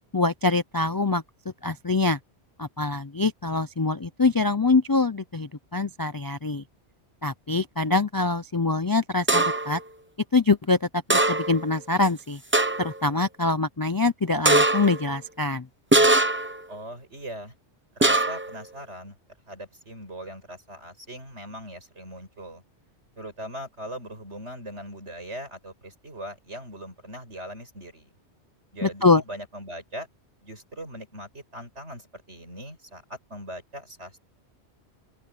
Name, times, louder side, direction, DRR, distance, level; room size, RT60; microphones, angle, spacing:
voice 1, 0.1-1.2 1.6-2.2 2.6-6.6 7.2-9.8 10.3-12.4 12.8-15.7 28.8-29.2, left 3 dB, 35° left, 0.3 m, -24 dB
sound 1, 9.3-9.8 11.1-11.7 12.0-12.1 12.5-13.0 14.4-15.0 15.9-16.6 18.0-18.5, right 2 dB, 10° right, 0.8 m, -21 dB
voice 2, 16.7-17.5 18.0-19.2 19.5-22.6 23.2-28.1 28.7-30.1 30.4-34.2, equal, 80° right, 7.3 m, -40 dB
open air
omnidirectional pair, 1.2 m